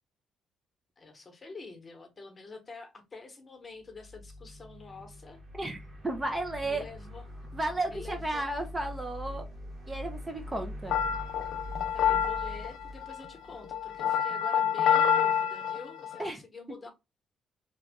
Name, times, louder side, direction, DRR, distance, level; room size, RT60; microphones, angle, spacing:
voice 1, 1.0-5.4 6.6-7.3 7.9-8.5 11.9-16.9, left 4 dB, 25° left, 1.0 m, -47 dB
sound 1, 3.8-14.0, left 1 dB, 40° right, 1.4 m, -44 dB
voice 2, 5.6-6.9 7.5-9.5 9.9-10.9 16.2-16.4, right 2 dB, 15° right, 0.5 m, -33 dB
sound 2, 10.9-16.3, left 8 dB, 75° left, 0.3 m, -27 dB
2.9 x 2.4 x 3.4 m
cardioid pair, 125°, 0 cm